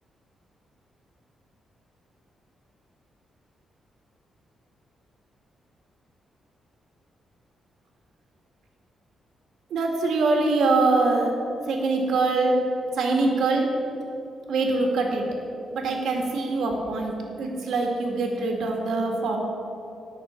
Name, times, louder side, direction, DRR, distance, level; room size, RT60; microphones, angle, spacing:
voice 1, 9.7-11.3 11.7-12.6 12.9-13.7 14.5-15.3 15.7-19.4, right 3 dB, 80° right, 1 dB, 1.8 m, -23 dB
18.0 x 6.5 x 4.4 m, 2.9 s
cardioid pair, 140°, 0 cm